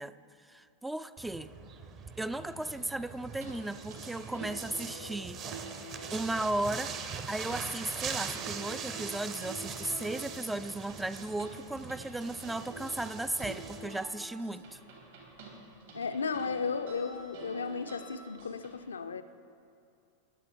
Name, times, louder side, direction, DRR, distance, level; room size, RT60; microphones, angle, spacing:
voice 1, 0.0-1.5 2.2-5.4 6.1-14.8, right 2 dB, 5° right, 13 dB, 0.3 m, -36 dB
sound 1, 1.2-13.9, right 6 dB, 35° right, 0.9 m, -42 dB
sound 2, 3.4-18.7, right 3 dB, 60° right, 3.0 m, -48 dB
voice 2, 15.9-19.2, left 5 dB, 70° left, 10 dB, 0.5 m, -34 dB
22.0 x 8.2 x 3.7 m, 2.5 s
figure-of-eight pair, 90°, 0 cm